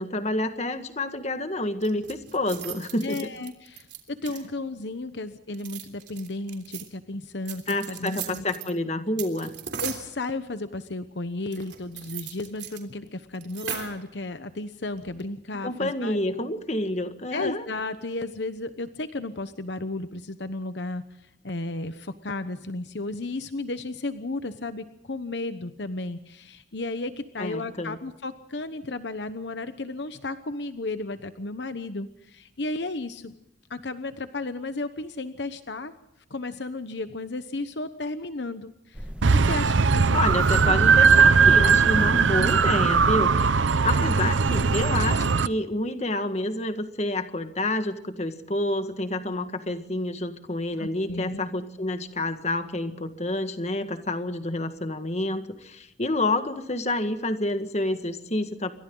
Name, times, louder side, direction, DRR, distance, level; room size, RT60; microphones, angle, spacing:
voice 1, 0.0-3.2 7.7-9.5 15.6-17.6 27.4-28.0 40.1-43.6 43.8-58.7, left 2 dB, 35° left, 8 dB, 1.8 m, -28 dB
sound 1, 1.8-4.7 5.5-6.9 7.4-8.7 9.2-10.1 11.5-12.8 13.1-13.2 13.3-14.0 15.0-15.3, right 9 dB, 65° right, 3.4 m, -38 dB
voice 2, 3.0-8.4 9.8-16.4 17.3-33.3 33.7-35.9 36.3-40.2 50.8-51.4, left 2 dB, 65° left, 10 dB, 1.0 m, -34 dB
sound 2, 38.9-45.1, equal, 5° right, 1.6 m, -40 dB
sound 3, 39.2-45.5, right 5 dB, 85° right, 0.7 m, -19 dB
28.0 x 24.0 x 3.9 m, 0.83 s
head